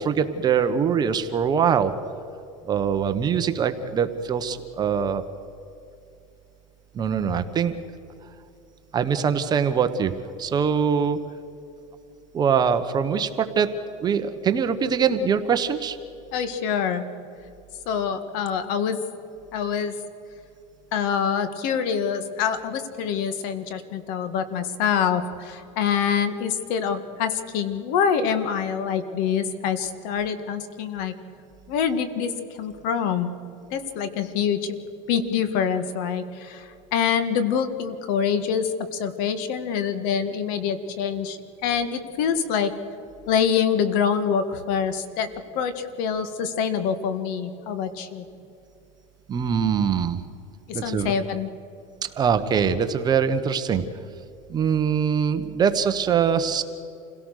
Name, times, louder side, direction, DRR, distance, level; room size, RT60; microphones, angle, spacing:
voice 1, 0.0-1.9 2.6-5.2 6.9-7.7 8.9-11.2 12.3-13.7 14.0-16.0 49.3-50.2 50.7-51.1 52.0-53.9 54.5-56.6, right 7 dB, 25° right, 9 dB, 1.2 m, -23 dB
voice 2, 16.3-17.0 17.9-19.0 19.5-19.9 20.9-31.1 31.7-33.3 33.7-34.8 35.1-42.7 43.3-48.2 50.7-51.5, left 7 dB, 65° left, 10 dB, 1.9 m, -25 dB
27.5 x 17.5 x 6.6 m, 2.7 s
supercardioid pair, 145°, 15 cm